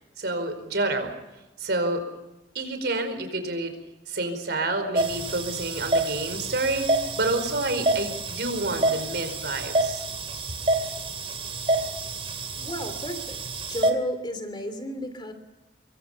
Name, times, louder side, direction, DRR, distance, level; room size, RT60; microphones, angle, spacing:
voice 1, 0.2-1.1 1.6-2.1 2.5-3.8 4.1-10.0, right 2 dB, 65° right, 7 dB, 4.9 m, -28 dB
sound 1, 5.0-13.9, right 2 dB, 35° right, 2.8 m, -28 dB
voice 2, 12.6-13.4 13.7-15.3, equal, 25° left, 8 dB, 2.8 m, -33 dB
25.0 x 23.5 x 5.7 m, 1.0 s
head